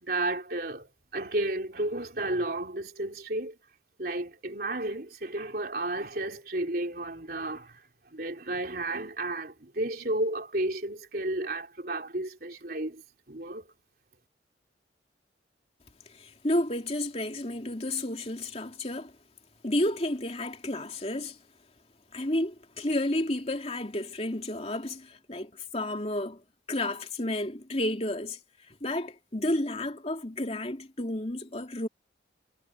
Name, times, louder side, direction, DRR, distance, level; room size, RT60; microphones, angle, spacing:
voice 1, 0.0-3.6 4.0-13.0 13.3-13.7, right 2 dB, 55° right, 3.8 m, -32 dB
voice 2, 16.1-19.1 19.6-21.4 22.1-26.4 26.7-28.4 28.8-31.9, left 1 dB, 35° left, 2.9 m, -31 dB
head